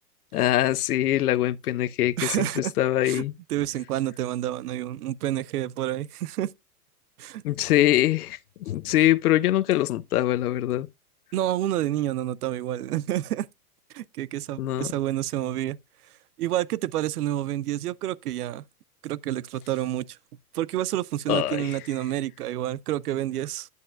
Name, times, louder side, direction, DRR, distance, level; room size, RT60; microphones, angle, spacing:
voice 1, 0.3-3.3 7.4-10.9 14.6-14.9 21.3-21.7, left 14 dB, 75° left, 0.6 m, -23 dB
voice 2, 2.2-2.7 3.0-3.2 3.5-6.5 7.2-7.4 11.3-13.5 13.9-15.8 16.4-18.6 19.0-20.2 20.5-23.7, right 13 dB, 80° right, 0.6 m, -29 dB
9.4 x 7.5 x 2.3 m
hypercardioid pair, 125°, 46 cm